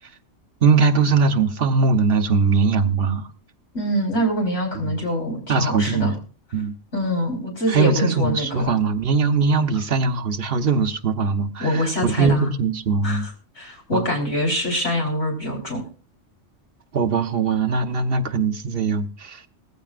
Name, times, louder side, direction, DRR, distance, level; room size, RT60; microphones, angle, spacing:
voice 1, 0.6-3.3 4.8-5.0 5.5-6.1 6.5-6.7 7.7-13.3 13.9-14.1 16.9-19.4, right 4 dB, 55° right, 1.1 m, -21 dB
voice 2, 3.7-6.1 6.9-8.7 11.6-12.5 13.0-15.8, equal, 70° left, 4.7 m, -24 dB
18.5 x 15.0 x 2.5 m
omnidirectional pair, 1.3 m